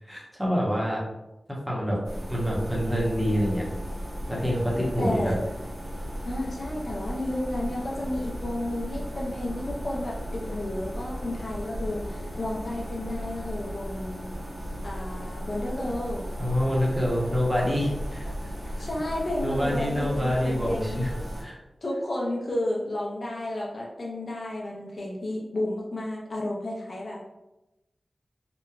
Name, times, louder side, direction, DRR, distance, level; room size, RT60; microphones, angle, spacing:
voice 1, 0.1-1.0 1.5-2.0 2.3-3.6 4.3-5.3 16.4-18.8 19.4-21.1 21.4-21.6, equal, 5° right, -4 dB, 0.9 m, -27 dB
sound 1, 2.0-21.4, equal, 90° right, 1.0 m, -36 dB
voice 2, 5.0-5.4 6.2-14.3 14.8-16.3 18.6-21.2 21.8-27.2, left 1 dB, 60° left, -3 dB, 0.5 m, -32 dB
2.9 x 2.2 x 2.3 m, 0.95 s
wide cardioid pair, 60°, 0 cm